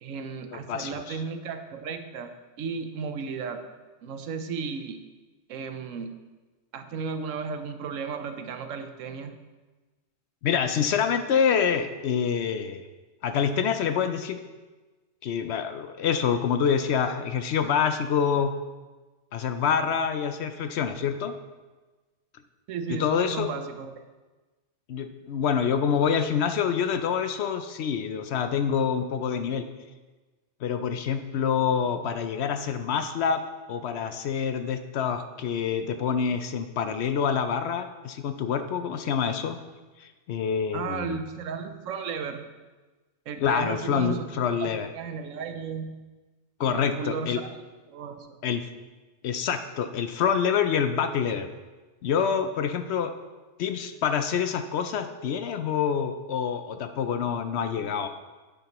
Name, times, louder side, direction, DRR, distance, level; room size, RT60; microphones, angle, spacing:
voice 1, 0.0-3.6 4.0-5.0 5.5-6.1 6.7-9.4 22.7-23.9 40.7-42.4 43.3-44.3 44.6-46.0 46.7-47.5 47.9-48.4 57.7-58.1, right 5 dB, 85° right, 8 dB, 1.1 m, -34 dB
voice 2, 0.5-1.2 10.4-12.8 13.2-14.4 15.2-18.5 19.3-21.3 22.9-23.5 24.9-29.6 30.6-33.4 33.7-39.6 40.0-41.2 43.4-44.9 46.6-47.4 48.4-48.7 49.2-51.5 52.0-53.1 53.6-58.1, left 7 dB, 65° left, 9 dB, 0.8 m, -26 dB
9.2 x 7.9 x 3.0 m, 1.2 s
omnidirectional pair, 1.3 m